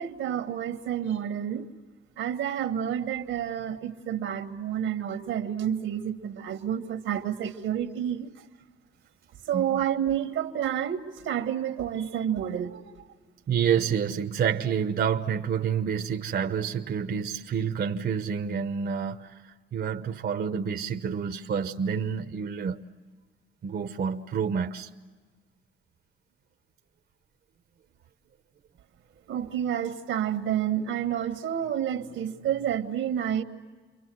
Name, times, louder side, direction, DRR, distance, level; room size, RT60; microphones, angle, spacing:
voice 1, 0.0-1.7 2.2-8.3 9.5-12.9 29.3-33.4, right 9 dB, 85° right, 1.6 m, -29 dB
voice 2, 13.5-22.8 23.6-24.9, right 7 dB, 55° right, 1.0 m, -28 dB
29.5 x 23.5 x 7.7 m
cardioid pair, 90°, 20 cm